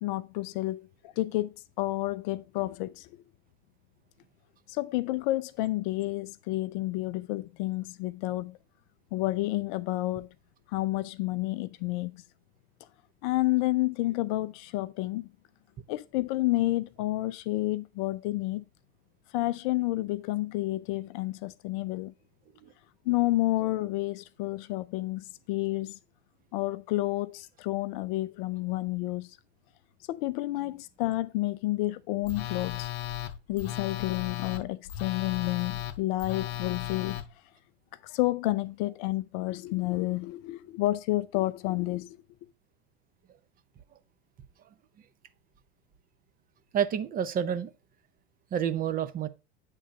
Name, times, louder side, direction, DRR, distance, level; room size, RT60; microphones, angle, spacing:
voice 1, 0.0-3.1 4.7-8.6 9.1-10.3 10.7-12.2 13.2-15.3 15.9-18.6 19.3-22.1 23.1-26.0 26.5-29.4 30.1-32.9 33.5-37.2 38.0-42.2, left 18 dB, 45° left, 0.5 m, -30 dB
Telephone, 32.3-37.2, left 12 dB, 60° left, 0.8 m, -35 dB
voice 2, 46.7-47.7 48.5-49.3, right 9 dB, 25° right, 0.7 m, -28 dB
8.2 x 3.8 x 5.2 m
hypercardioid pair, 100°, 34 cm